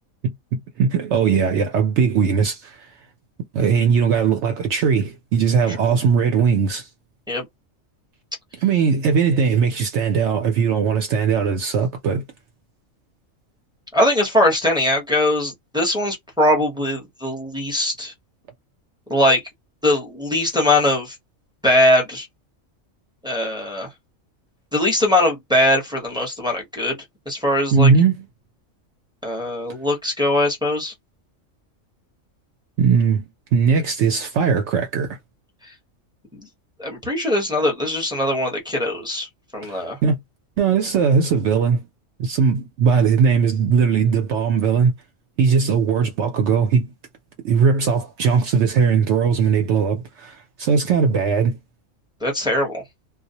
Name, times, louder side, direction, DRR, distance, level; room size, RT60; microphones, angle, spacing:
voice 1, 0.2-2.8 3.5-6.9 8.6-12.2 27.7-28.1 32.8-35.2 39.6-40.2 40.6-41.9 42.2-44.9 45.4-46.9 47.4-51.6, right 6 dB, 65° right, 0.8 m, -19 dB
voice 2, 13.9-18.1 19.1-19.4 19.8-21.1 21.6-22.3 23.2-23.9 24.7-27.0 27.3-27.9 29.2-30.9 36.3-36.4 36.8-39.3 39.5-40.0 52.2-52.8, left 1 dB, 5° right, 0.6 m, -21 dB
2.3 x 2.0 x 2.7 m
omnidirectional pair, 1.4 m